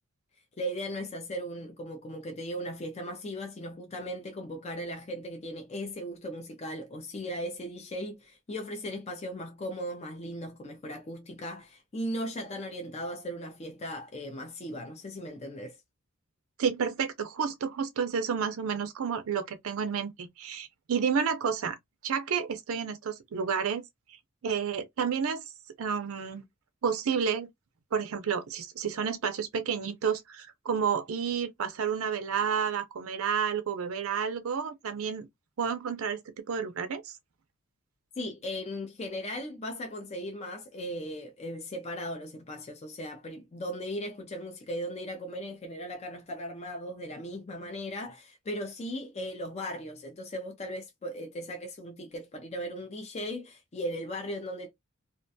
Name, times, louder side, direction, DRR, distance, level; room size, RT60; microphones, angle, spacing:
voice 1, 0.6-15.8 38.2-54.7, equal, 30° left, 0.4 m, -37 dB
voice 2, 16.6-21.8 22.0-23.8 24.4-25.4 25.8-26.4 26.8-27.5 27.9-35.3 35.6-36.2 36.5-37.1, right 6 dB, 70° right, 0.5 m, -30 dB
2.3 x 2.2 x 2.6 m
head